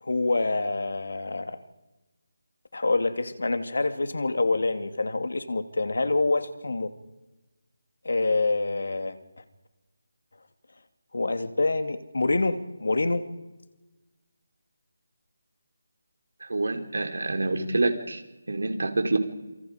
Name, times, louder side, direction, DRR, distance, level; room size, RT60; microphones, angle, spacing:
voice 1, 0.0-1.6 2.7-6.9 8.0-9.2 11.1-13.2, left 3 dB, 70° left, 10 dB, 2.4 m, -26 dB
voice 2, 16.4-18.2 18.5-19.2, right 2 dB, 80° right, 6 dB, 4.0 m, -27 dB
28.0 x 24.5 x 5.1 m, 1.1 s
figure-of-eight pair, 180°, 0 cm